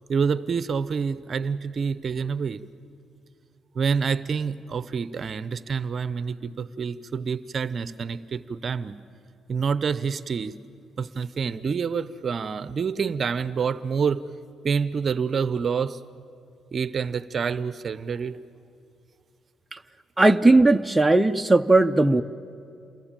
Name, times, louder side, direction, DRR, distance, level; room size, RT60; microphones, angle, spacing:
voice 1, 0.1-2.6 3.7-9.0 9.5-10.6 11.0-14.2 14.6-16.0 16.7-18.4, right 6 dB, 45° right, 15 dB, 0.7 m, -27 dB
voice 2, 20.2-22.2, right 2 dB, 10° right, 6 dB, 0.7 m, -18 dB
28.0 x 22.0 x 9.0 m, 2.6 s
cardioid pair, 90°, 0 cm